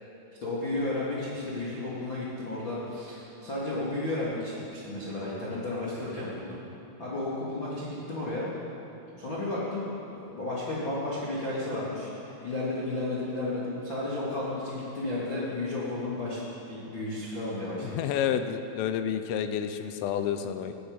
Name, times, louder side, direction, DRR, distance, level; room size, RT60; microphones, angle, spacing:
voice 1, 0.4-6.6 7.0-8.5 9.2-16.4 16.7-18.0 20.4-20.5, left 2 dB, 60° left, -8 dB, 1.2 m, -33 dB
voice 2, 17.8-20.7, left 9 dB, 90° left, 9 dB, 3.2 m, -30 dB
17.5 x 8.7 x 5.1 m, 3.0 s
omnidirectional pair, 5.7 m